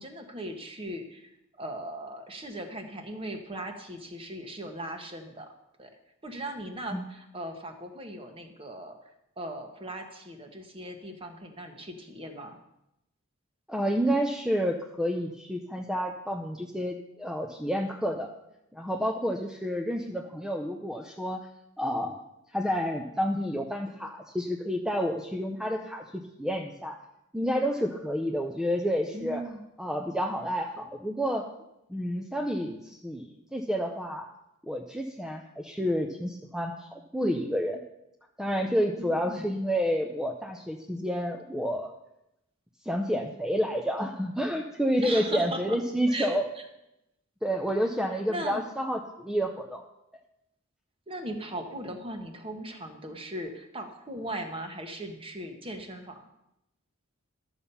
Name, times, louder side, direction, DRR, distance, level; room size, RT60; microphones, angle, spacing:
voice 1, 0.0-5.5 5.8-5.9 6.2-9.0 9.4-12.6 29.1-29.6 39.0-39.5 45.0-45.8 46.1-46.6 48.3-48.6 51.1-56.3, right 1 dB, 25° right, 5 dB, 1.2 m, -38 dB
voice 2, 13.7-18.3 18.7-21.4 21.8-22.3 22.5-27.0 27.3-29.5 29.8-31.5 31.9-34.3 34.7-37.8 38.4-41.9 42.8-46.5 47.4-49.8, equal, 5° right, 2 dB, 0.6 m, -29 dB
12.5 x 7.1 x 5.6 m, 0.86 s
head